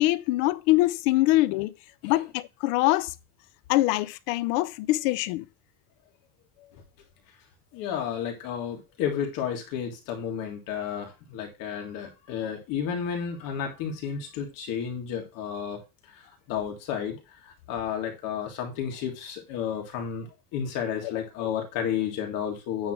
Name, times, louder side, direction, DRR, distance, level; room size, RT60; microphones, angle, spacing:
voice 1, 0.0-1.7 2.0-3.1 3.7-5.4, left 18 dB, 65° left, 0.6 m, -23 dB
voice 2, 7.7-15.8 16.1-22.9, left 8 dB, 50° left, 1.9 m, -32 dB
9.6 x 3.4 x 5.9 m
cardioid pair, 170°, 42 cm